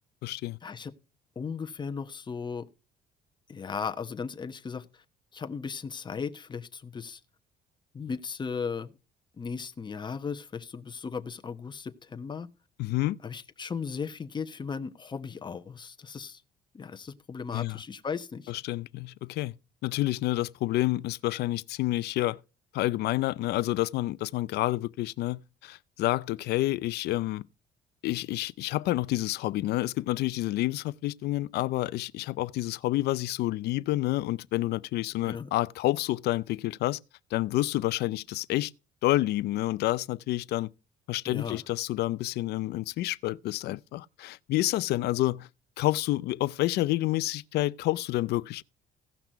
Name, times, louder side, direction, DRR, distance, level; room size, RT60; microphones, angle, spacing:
voice 1, 0.2-0.6 12.8-13.2 17.5-17.8 18.5-19.5 19.8-22.4 22.7-27.4 28.0-37.0 37.3-38.7 39.0-40.7 41.1-45.5 45.8-48.6, left 16 dB, 75° left, 0.6 m, -29 dB
voice 2, 1.4-2.6 3.5-4.9 5.3-7.2 7.9-8.9 9.4-12.5 13.2-16.4 16.7-18.5 35.2-35.5 41.2-41.6, left 5 dB, 25° left, 1.1 m, -36 dB
16.5 x 5.9 x 4.5 m
cardioid pair, 110°, 17 cm